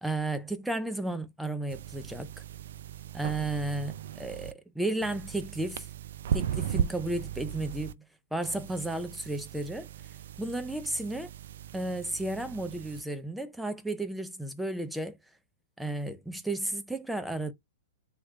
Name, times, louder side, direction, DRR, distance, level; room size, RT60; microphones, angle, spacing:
voice 1, 0.0-2.3 3.1-5.9 6.3-8.0 8.3-9.9 10.4-11.3 11.7-15.2 15.8-17.5, right 2 dB, 5° right, 0.5 m, -33 dB
sound 1, 1.7-4.5 5.0-7.9 8.4-13.0, right 9 dB, 65° right, 0.3 m, -37 dB
3.2 x 2.3 x 3.9 m
hypercardioid pair, 125°, 0 cm